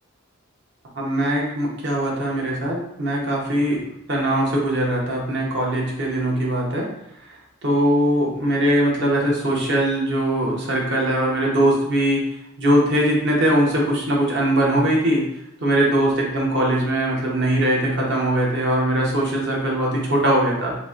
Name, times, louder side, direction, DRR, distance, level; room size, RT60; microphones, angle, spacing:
voice 1, 1.0-3.8 4.1-6.9 7.6-12.2 12.6-15.2 15.6-20.8, right 1 dB, 60° right, -2 dB, 0.8 m, -21 dB
3.0 x 2.1 x 3.6 m, 0.80 s
head